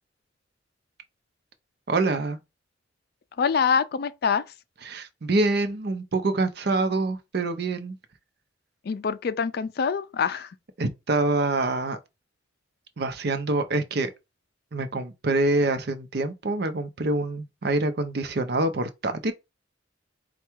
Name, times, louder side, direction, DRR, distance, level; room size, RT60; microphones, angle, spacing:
voice 1, 1.9-2.4 4.8-8.0 10.8-12.0 13.0-14.1 14.7-19.3, right 2 dB, 60° right, 0.6 m, -26 dB
voice 2, 3.4-4.4 8.8-10.5, left 6 dB, 55° left, 0.4 m, -25 dB
4.5 x 2.3 x 4.4 m
head